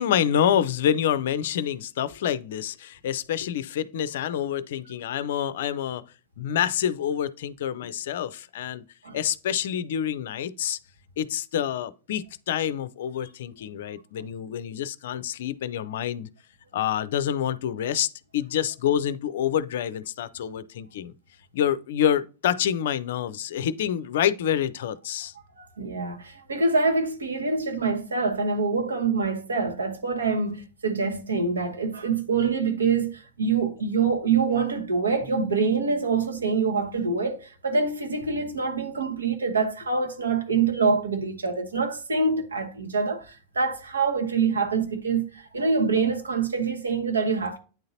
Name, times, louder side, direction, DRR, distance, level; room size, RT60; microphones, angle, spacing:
voice 1, 0.0-6.0 6.4-8.8 9.1-10.8 11.2-16.3 16.7-21.1 21.5-25.3, left 10 dB, 55° left, 0.4 m, -27 dB
voice 2, 25.6-47.6, right 4 dB, 75° right, 1.2 m, -25 dB
9.0 x 3.8 x 2.7 m
figure-of-eight pair, 90°, 0 cm